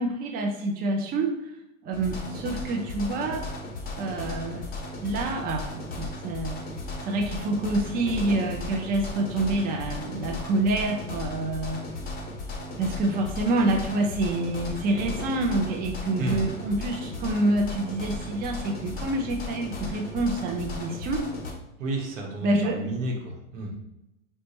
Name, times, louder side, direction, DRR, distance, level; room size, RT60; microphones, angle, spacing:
voice 1, 0.0-1.3 1.8-3.5 4.0-4.7 5.0-6.6 7.0-11.8 12.8-21.2 22.4-22.9, right 2 dB, 25° right, 4 dB, 0.4 m, -27 dB
sound 1, 1.9-21.5, left 2 dB, 20° left, 0.6 m, -36 dB
voice 2, 21.8-23.7, right 1 dB, 70° right, 1 dB, 1.0 m, -31 dB
4.1 x 2.2 x 2.8 m, 0.88 s
hypercardioid pair, 105°, 40 cm